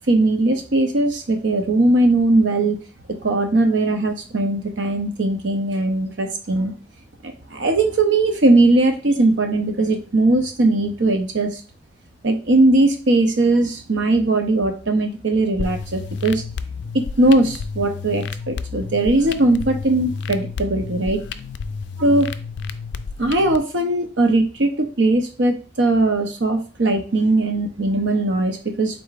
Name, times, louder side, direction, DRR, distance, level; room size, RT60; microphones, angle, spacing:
voice 1, 0.1-2.8 3.1-6.7 7.2-11.6 12.2-16.4 16.9-21.2 22.0-22.3 23.2-29.0, right 2 dB, 75° right, 5 dB, 0.7 m, -19 dB
sound 1, 15.6-23.6, left 5 dB, 70° left, 0.3 m, -31 dB
4.8 x 3.8 x 2.4 m, 0.37 s
head